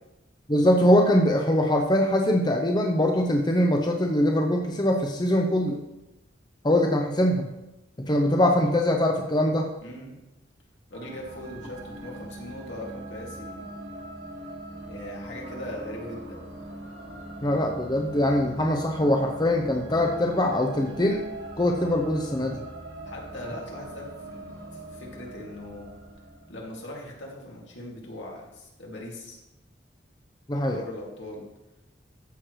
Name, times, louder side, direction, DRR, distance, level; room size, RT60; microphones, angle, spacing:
voice 1, 0.5-5.8 6.6-7.5 8.0-9.7 17.4-21.2 21.6-22.6 30.5-30.8, left 1 dB, 20° left, 2 dB, 0.6 m, -22 dB
voice 2, 9.8-10.2 10.9-13.7 14.9-16.4 23.1-25.9 26.5-29.4 30.7-31.4, left 1 dB, 75° left, -2 dB, 2.3 m, -40 dB
sound 1, 10.9-27.1, right 1 dB, 60° right, 1.7 m, -42 dB
14.0 x 6.4 x 3.1 m, 0.96 s
head